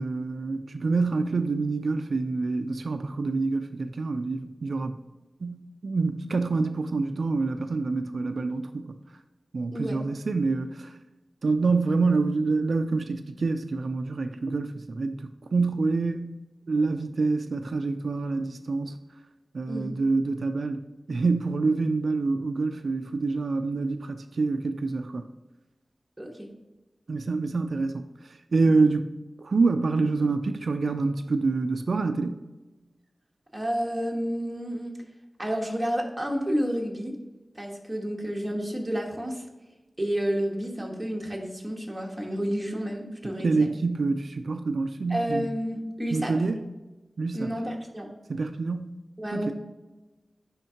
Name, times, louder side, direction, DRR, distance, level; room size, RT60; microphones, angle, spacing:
voice 1, 0.0-5.0 5.4-9.0 9.5-10.9 11.4-16.3 16.7-18.9 19.5-20.8 21.1-25.2 27.1-28.1 28.5-29.1 29.4-32.4 43.4-45.5 46.1-46.6 47.2-47.5 48.3-48.9 49.3-49.5, right 3 dB, 85° right, 8 dB, 0.3 m, -26 dB
voice 2, 9.7-10.0 19.7-19.9 26.2-26.5 33.5-34.9 35.4-37.1 37.5-39.4 40.0-43.7 45.1-46.3 47.3-48.1 49.2-49.5, equal, 15° right, 0 dB, 1.3 m, -30 dB
9.9 x 3.6 x 2.9 m, 1.1 s
wide cardioid pair, 85°, 0 cm